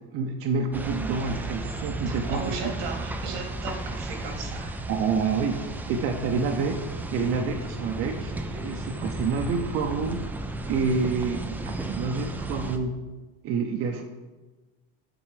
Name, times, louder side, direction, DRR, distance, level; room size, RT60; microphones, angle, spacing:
voice 1, 0.1-2.6 4.9-5.6 5.9-6.8 7.1-10.2 10.7-12.9 13.4-14.0, right 5 dB, 50° right, 4 dB, 0.7 m, -28 dB
sound 1, 0.7-12.8, right 2 dB, 5° right, 0.3 m, -34 dB
voice 2, 2.1-4.9, right 4 dB, 90° right, 2 dB, 2.0 m, -36 dB
8.9 x 3.9 x 4.9 m, 1.2 s
cardioid pair, 150°, 29 cm